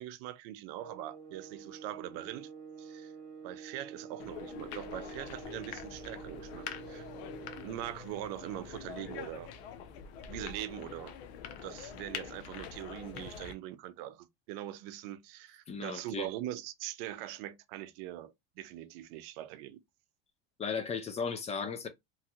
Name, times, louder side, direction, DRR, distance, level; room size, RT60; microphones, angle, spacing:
voice 1, 0.0-2.5 2.8-3.1 3.4-7.1 7.6-9.5 10.3-11.2 11.5-19.8, right 13 dB, 65° right, 0.6 m, -42 dB
sound 1, 0.8-7.8, right 6 dB, 50° right, 1.1 m, -48 dB
sound 2, 4.2-13.5, left 8 dB, 90° left, 0.7 m, -45 dB
voice 2, 15.7-16.3 20.6-21.9, left 5 dB, 20° left, 0.4 m, -35 dB
3.0 x 2.7 x 2.4 m
supercardioid pair, 135°, 31 cm